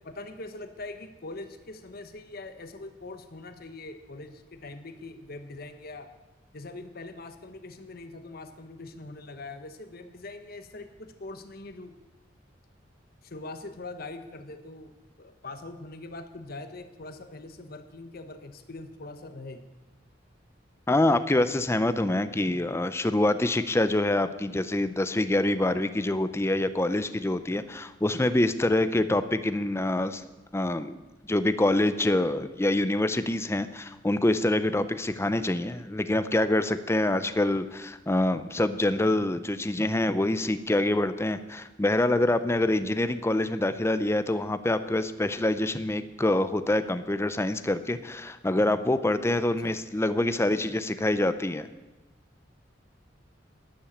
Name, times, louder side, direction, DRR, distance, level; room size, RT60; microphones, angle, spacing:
voice 1, 0.0-6.1 6.5-12.0 13.2-14.9 15.2-19.7 49.6-49.7, left 2 dB, 55° left, 8 dB, 1.1 m, -42 dB
voice 2, 20.9-30.2 30.5-31.0 31.3-51.7, left 1 dB, 15° left, 12 dB, 0.5 m, -26 dB
11.5 x 10.5 x 7.2 m, 1.1 s
head